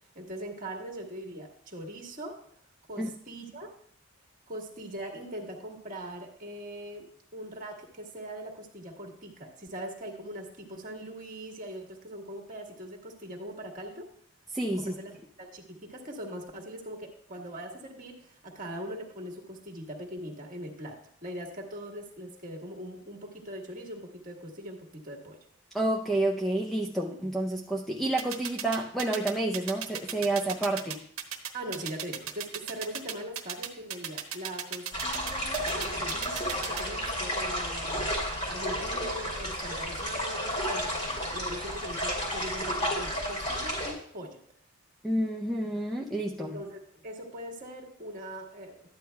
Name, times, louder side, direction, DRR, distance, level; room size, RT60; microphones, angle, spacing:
voice 1, 0.1-2.4 2.9-3.7 4.5-7.1 7.3-14.1 14.8-25.4 31.5-38.1 38.5-41.1 41.3-44.4 46.4-48.8, equal, 35° right, 1 dB, 1.5 m, -41 dB
voice 2, 14.5-15.0 25.7-31.0 45.0-46.6, right 1 dB, ahead, -1 dB, 0.5 m, -29 dB
sound 1, 28.2-36.8, right 9 dB, 70° right, 0.9 m, -35 dB
sound 2, 34.9-43.9, equal, 30° left, 2.7 m, -32 dB
12.5 x 9.5 x 2.2 m, 0.63 s
head